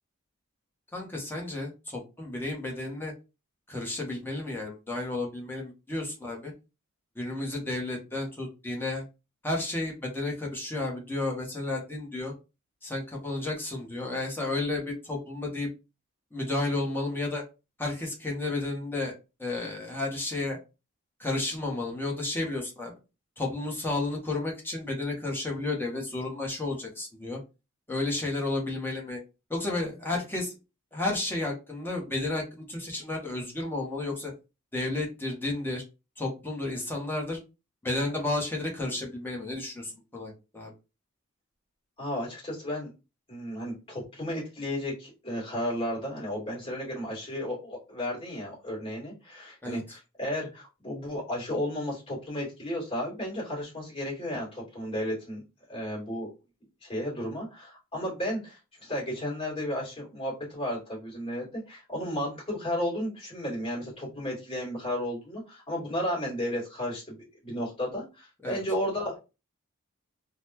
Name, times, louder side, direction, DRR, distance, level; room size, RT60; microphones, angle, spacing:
voice 1, 0.9-3.1 3.7-6.5 7.2-9.0 9.4-12.3 12.8-15.7 16.3-17.4 17.8-19.1 19.4-20.6 21.2-22.9 23.4-27.4 27.9-29.2 29.5-30.6 30.9-34.3 34.7-35.8 36.2-37.4 37.8-40.7 49.6-49.8 68.4-68.6, left 2 dB, 10° left, -1 dB, 0.9 m, -32 dB
voice 2, 42.0-42.9 43.3-55.4 55.7-56.3 56.8-67.2 67.4-69.2, equal, 25° left, -4 dB, 2.0 m, -33 dB
3.8 x 2.1 x 2.8 m, 0.29 s
head